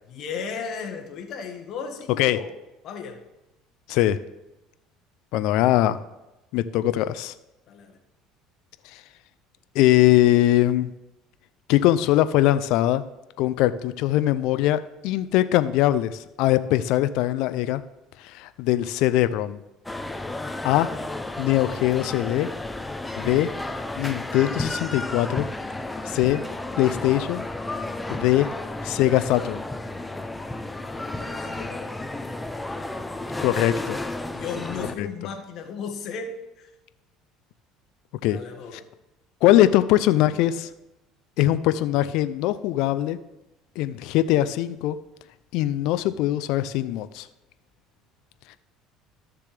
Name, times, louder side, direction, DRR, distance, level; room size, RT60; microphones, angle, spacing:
voice 1, 0.1-2.5 2.8-3.2 7.7-8.0 30.9-31.9 34.3-36.7 38.3-38.9, left 5 dB, 55° left, 3 dB, 1.7 m, -35 dB
voice 2, 5.3-6.0 6.5-7.3 8.9-9.0 9.7-10.9 11.7-13.0 13.4-17.8 18.2-19.6 20.6-20.9 21.4-22.5 23.2-23.5 24.0-25.5 26.0-26.4 26.8-27.4 28.1-28.5 28.8-29.6 33.4-34.0 35.0-35.1 38.2-38.4 39.4-40.7 41.4-43.2 43.8-45.0 45.5-47.3, left 14 dB, 70° left, 13 dB, 0.4 m, -21 dB
sound 1, 19.9-34.9, left 2 dB, 10° left, 0.6 m, -32 dB
13.5 x 6.7 x 3.4 m, 0.98 s
supercardioid pair, 100°, 0 cm